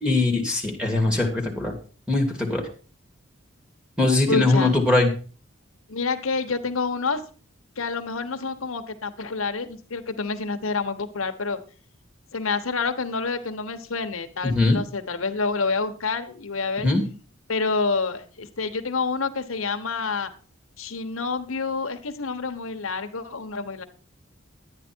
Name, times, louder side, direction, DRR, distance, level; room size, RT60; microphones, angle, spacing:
voice 1, 0.0-1.7 2.1-2.7 4.0-5.1 14.4-14.8 16.8-17.0, left 2 dB, 5° right, -1 dB, 2.5 m, -21 dB
voice 2, 4.3-4.8 5.9-7.2 7.8-11.6 12.3-16.9 17.5-20.3 20.8-23.8, left 4 dB, 85° left, 7 dB, 1.1 m, -28 dB
11.5 x 9.4 x 4.5 m, 0.38 s
head